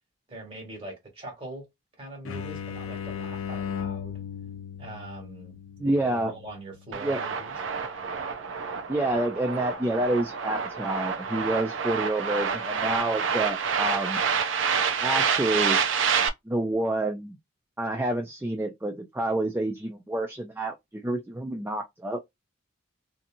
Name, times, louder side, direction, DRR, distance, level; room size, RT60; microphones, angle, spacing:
voice 1, 0.3-1.6 2.0-4.2 4.8-5.6 6.1-7.5, right 1 dB, 30° right, 1.5 m, -42 dB
sound 1, 2.3-7.8, left 8 dB, 90° left, 0.5 m, -37 dB
voice 2, 5.8-6.3 7.0-7.2 8.9-14.2 15.0-15.8 16.5-17.4 17.8-22.2, right 1 dB, 10° right, 0.3 m, -28 dB
sound 2, 6.9-16.3, right 6 dB, 65° right, 0.5 m, -28 dB
2.7 x 2.6 x 2.5 m
head